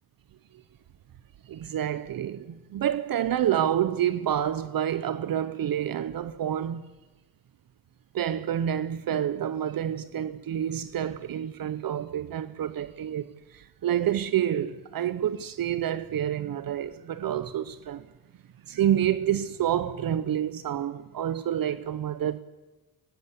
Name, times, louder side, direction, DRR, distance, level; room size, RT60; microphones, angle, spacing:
voice 1, 1.5-6.8 8.1-18.1 18.7-22.4, right 10 dB, 65° right, 0.9 m, -28 dB
22.0 x 18.5 x 8.3 m
cardioid pair, 120°, 37 cm